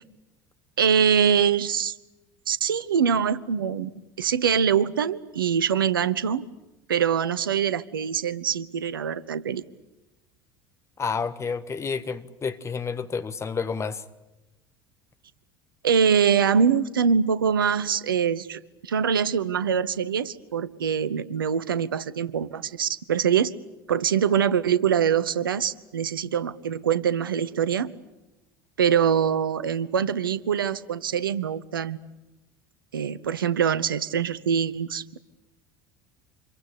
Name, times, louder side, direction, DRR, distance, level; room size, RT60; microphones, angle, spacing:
voice 1, 0.8-1.9 2.5-3.9 4.2-6.4 6.9-9.6 15.8-23.5 23.9-27.9 28.8-32.0 32.9-35.2, right 7 dB, 75° right, 1.0 m, -24 dB
voice 2, 11.0-14.0, left 5 dB, 25° left, 1.6 m, -30 dB
27.0 x 22.5 x 8.6 m
figure-of-eight pair, 70°, 12 cm